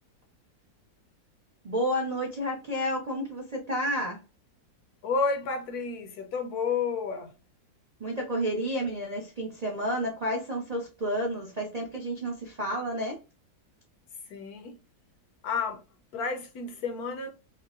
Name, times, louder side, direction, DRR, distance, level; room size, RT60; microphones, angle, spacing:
voice 1, 1.6-4.2 8.0-13.2, equal, 55° right, 0.4 m, -30 dB
voice 2, 5.0-7.3 14.3-14.8 15.4-15.8 16.1-17.3, left 5 dB, 65° left, 1.0 m, -31 dB
5.4 x 2.1 x 2.4 m
omnidirectional pair, 2.0 m